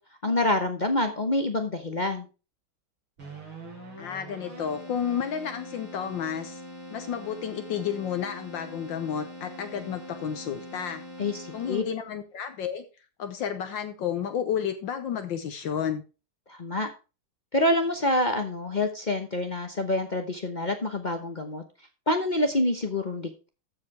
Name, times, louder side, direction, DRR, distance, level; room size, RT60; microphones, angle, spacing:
voice 1, 0.2-2.3 11.2-11.8 16.5-16.9 17.5-21.6 22.1-23.5, left 1 dB, 45° left, 6 dB, 0.6 m, -27 dB
Keyboard (musical), 3.2-12.2, equal, 80° right, 5.4 m, -43 dB
voice 2, 4.0-6.6 6.9-11.0 11.5-12.8 13.2-16.0, left 8 dB, 70° left, 8 dB, 1.6 m, -31 dB
14.0 x 4.9 x 4.7 m, 0.32 s
omnidirectional pair, 2.2 m